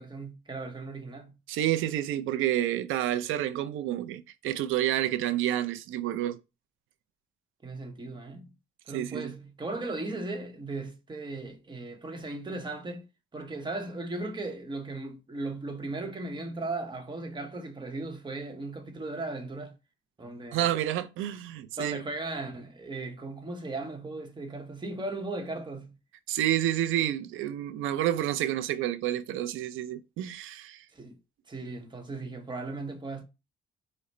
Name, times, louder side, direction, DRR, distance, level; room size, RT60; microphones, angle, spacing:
voice 1, 0.0-1.4 7.6-8.5 8.9-13.1 13.3-19.8 20.2-20.7 21.8-26.0 30.9-31.2 31.5-33.2, right 2 dB, 25° right, 1.0 m, -37 dB
voice 2, 1.5-6.4 8.9-9.3 20.5-22.0 26.3-30.8, right 12 dB, 85° right, 0.5 m, -29 dB
4.9 x 2.1 x 4.1 m
cardioid pair, 90°, 20 cm